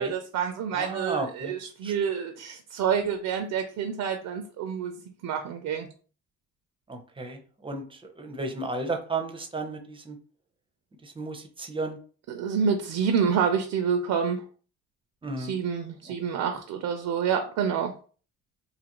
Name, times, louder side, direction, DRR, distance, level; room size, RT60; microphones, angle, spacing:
voice 1, 0.0-5.0 5.2-5.9 12.3-14.4 15.4-17.9, right 7 dB, 75° right, 6 dB, 0.5 m, -28 dB
voice 2, 0.7-1.5 1.8-1.9 6.9-10.2 11.0-12.0 15.2-15.6 16.1-16.2, right 3 dB, 15° right, 4 dB, 0.6 m, -34 dB
2.8 x 2.5 x 2.9 m, 0.40 s
cardioid pair, 90°, 30 cm